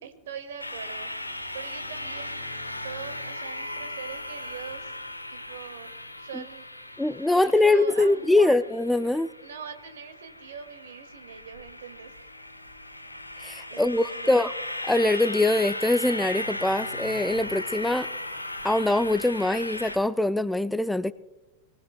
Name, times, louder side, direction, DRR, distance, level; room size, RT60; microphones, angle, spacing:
voice 1, 0.0-1.1 1.5-2.4 2.8-4.9 5.3-5.9 6.2-6.7 7.3-8.6 9.4-12.1 13.7-14.4, right 7 dB, 60° right, 9 dB, 2.0 m, -42 dB
sound 1, 0.6-20.0, left 1 dB, 85° left, 1.2 m, -37 dB
voice 2, 7.0-9.3 13.4-14.5 14.8-18.1 18.6-21.1, left 2 dB, 5° left, 16 dB, 0.4 m, -23 dB
24.0 x 18.5 x 2.2 m, 1.1 s
figure-of-eight pair, 90°, 0 cm